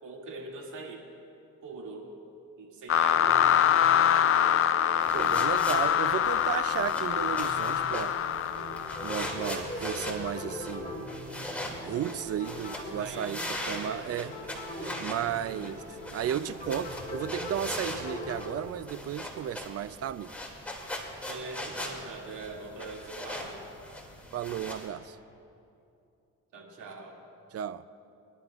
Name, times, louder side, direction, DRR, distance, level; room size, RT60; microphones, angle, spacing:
voice 1, 0.0-1.0 1.6-2.1 2.6-3.4 12.7-13.5 13.8-14.5 14.8-15.0 15.4-15.7 21.3-23.6 26.5-27.2, right 3 dB, 85° right, -1 dB, 2.4 m, -43 dB
sound 1, 2.9-9.3, left 9 dB, 45° left, 0.5 m, -25 dB
sound 2, 3.2-18.5, left 1 dB, 30° left, 3.3 m, -41 dB
sound 3, 5.0-24.9, left 1 dB, 5° left, 2.4 m, -41 dB
voice 2, 5.1-8.2 9.0-11.0 11.8-13.4 13.7-14.4 15.0-15.8 16.1-20.3 24.3-25.2 27.5-27.8, right 10 dB, 55° right, 15 dB, 0.5 m, -34 dB
24.0 x 11.5 x 2.4 m, 2.7 s
cardioid pair, 90°, 30 cm